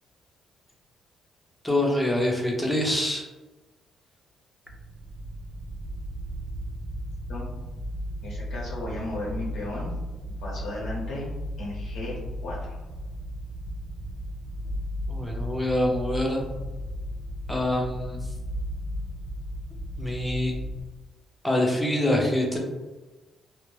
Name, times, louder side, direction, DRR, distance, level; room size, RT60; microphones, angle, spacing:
voice 1, 1.6-3.2 15.1-16.4 17.5-18.2 20.0-20.5 21.4-22.6, left 1 dB, 5° left, -1 dB, 0.7 m, -25 dB
sound 1, 4.7-20.8, equal, 85° right, 0.5 m, -35 dB
voice 2, 8.2-9.9 10.2-11.3 11.6-12.8, left 2 dB, 75° left, -5 dB, 0.7 m, -35 dB
2.2 x 2.1 x 3.2 m, 1.2 s
cardioid pair, 90°, 0 cm